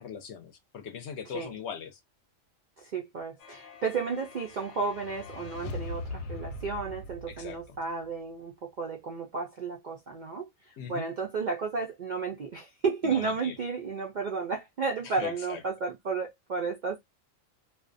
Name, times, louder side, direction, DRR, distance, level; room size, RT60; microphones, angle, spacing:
voice 1, 0.0-2.0 7.3-7.8 10.8-11.0 13.0-13.5 15.0-15.6, left 7 dB, 65° left, 0.8 m, -40 dB
voice 2, 2.8-17.0, right 4 dB, 65° right, 0.4 m, -33 dB
sound 1, 3.4-8.1, left 2 dB, 90° left, 1.0 m, -41 dB
2.4 x 2.1 x 2.5 m
omnidirectional pair, 1.4 m